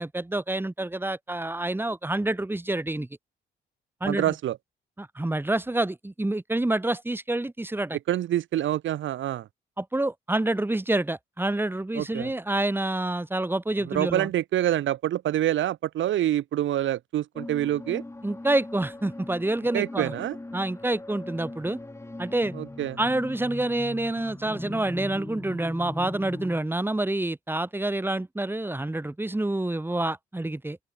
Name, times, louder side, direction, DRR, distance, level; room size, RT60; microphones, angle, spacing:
voice 1, 0.0-3.1 4.0-4.3 5.0-8.0 9.8-14.3 18.2-20.1 20.5-21.8 22.2-22.5 23.0-30.8, right 2 dB, 10° right, 3.4 m, -27 dB
voice 2, 4.0-4.6 8.1-9.5 11.9-12.3 13.9-18.0 19.7-20.4 22.5-23.0, right 12 dB, 75° right, 1.8 m, -26 dB
sound 1, 17.4-26.6, left 2 dB, 15° left, 4.4 m, -40 dB
open air
cardioid pair, 90°, 20 cm